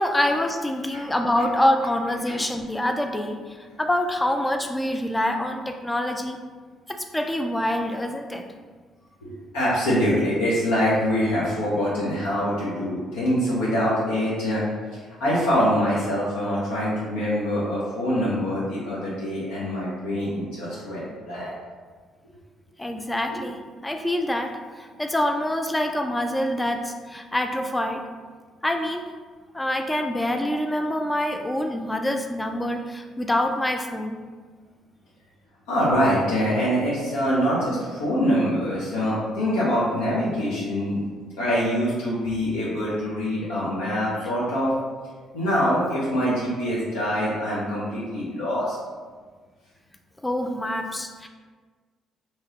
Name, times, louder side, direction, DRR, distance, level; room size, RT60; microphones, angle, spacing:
voice 1, 0.0-6.4 6.9-8.4 22.8-24.5 24.8-28.0 28.6-29.0 29.5-34.2 50.2-51.3, left 1 dB, 15° left, 4 dB, 0.3 m, -26 dB
voice 2, 9.2-14.6 15.2-21.5 35.7-41.0 41.4-44.7 45.3-48.8, equal, 80° left, -8 dB, 0.7 m, -24 dB
3.0 x 2.7 x 2.9 m, 1.5 s
hypercardioid pair, 50°, 0 cm